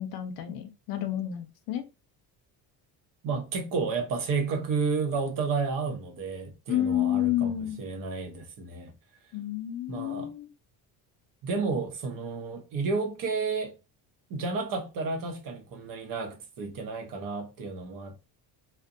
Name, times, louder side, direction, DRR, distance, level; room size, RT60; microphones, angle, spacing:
voice 1, 0.0-1.9 6.7-7.8 9.3-10.5, left 12 dB, 60° left, 0.6 m, -30 dB
voice 2, 3.2-8.9 9.9-10.3 11.4-13.8 14.3-18.3, right 4 dB, 55° right, 0.7 m, -31 dB
2.6 x 2.2 x 2.5 m
cardioid pair, 165°, 40 cm